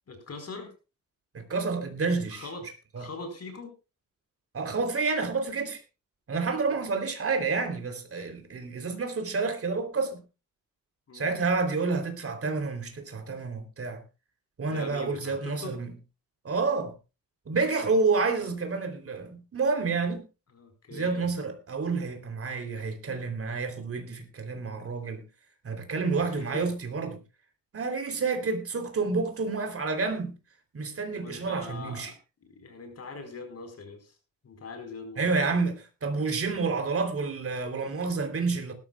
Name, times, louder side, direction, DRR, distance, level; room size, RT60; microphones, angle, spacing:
voice 1, 0.1-0.7 2.3-2.7 3.0-3.7 6.6-6.8 11.1-11.3 14.6-15.7 20.5-21.3 26.2-26.7 31.0-32.1 32.4-34.2 34.4-35.2, left 3 dB, 45° left, 4.6 m, -42 dB
voice 2, 1.3-2.4 2.9-3.0 4.5-5.8 6.3-10.2 11.1-14.0 14.6-15.9 16.4-16.9 17.5-20.2 20.9-25.2 25.6-27.2 27.7-30.3 30.7-32.1 35.2-38.7, right 4 dB, 40° right, 3.3 m, -29 dB
20.0 x 13.0 x 2.3 m
wide cardioid pair, 140°, 34 cm